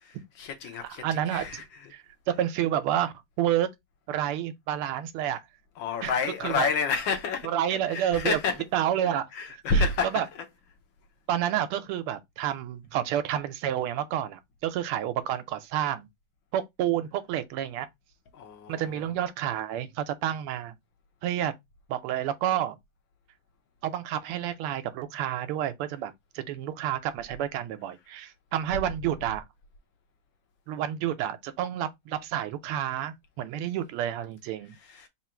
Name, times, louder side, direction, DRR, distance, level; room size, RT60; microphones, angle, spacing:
voice 1, 0.0-1.9 5.7-8.7 9.3-10.5 13.3-13.4 18.3-19.1 28.7-28.8 34.6-35.1, left 4 dB, 70° left, 1.4 m, -30 dB
voice 2, 0.8-1.6 1.9-3.7 4.1-5.4 6.0-6.1 6.4-6.7 7.4-8.4 8.7-9.3 9.7-10.2 11.3-16.1 16.5-17.9 18.7-20.7 21.2-21.5 21.9-22.8 23.8-29.4 30.7-34.7, right 11 dB, 80° right, 1.5 m, -29 dB
3.8 x 2.5 x 4.3 m
omnidirectional pair, 2.4 m